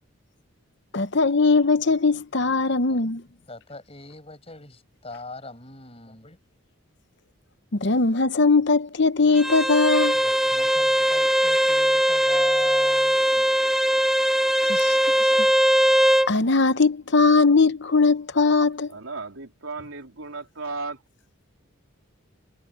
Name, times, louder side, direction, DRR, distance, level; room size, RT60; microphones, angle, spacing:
voice 1, 0.9-3.2 7.8-10.2 14.6-15.0 16.3-18.9, left 4 dB, 55° left, 0.9 m, -20 dB
voice 2, 3.5-6.4 10.1-13.5, left 2 dB, 30° left, 6.0 m, -42 dB
Bowed string instrument, 9.4-16.3, equal, ahead, 0.9 m, -20 dB
voice 3, 18.9-21.0, right 3 dB, 85° right, 3.6 m, -35 dB
head